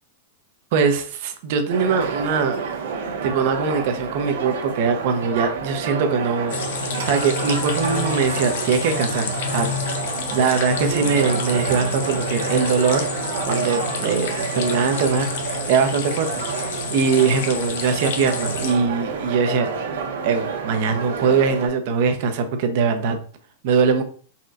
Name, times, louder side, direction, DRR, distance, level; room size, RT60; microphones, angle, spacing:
voice 1, 0.7-2.6 3.0-13.1 13.5-19.7 20.2-23.2 23.6-24.0, right 5 dB, 55° right, 7 dB, 0.8 m, -22 dB
sound 1, 1.7-21.7, right 5 dB, 85° right, 1.1 m, -29 dB
sound 2, 6.5-18.8, left 4 dB, 70° left, 0.8 m, -29 dB
4.3 x 3.8 x 2.5 m, 0.43 s
supercardioid pair, 145°, 0 cm